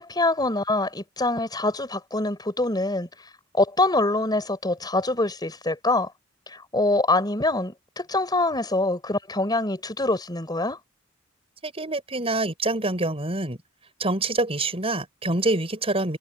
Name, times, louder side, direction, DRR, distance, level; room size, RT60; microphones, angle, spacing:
voice 1, 0.0-3.1 3.5-6.1 6.5-10.8, left 2 dB, 20° left, 4.3 m, -24 dB
voice 2, 11.6-13.6 14.0-16.2, right 2 dB, 30° right, 6.8 m, -26 dB
head